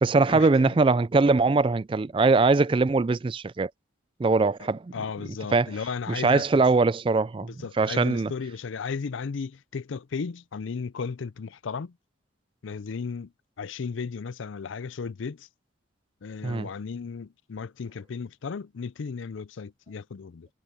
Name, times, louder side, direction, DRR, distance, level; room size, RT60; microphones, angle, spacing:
voice 1, 0.0-3.7 4.2-4.9 5.5-5.7 6.1-8.3 16.4-16.7, right 3 dB, 25° right, 0.3 m, -22 dB
voice 2, 4.6-6.6 7.6-11.9 12.6-13.3 13.6-15.5 16.2-20.5, left 5 dB, 75° left, 0.5 m, -35 dB
head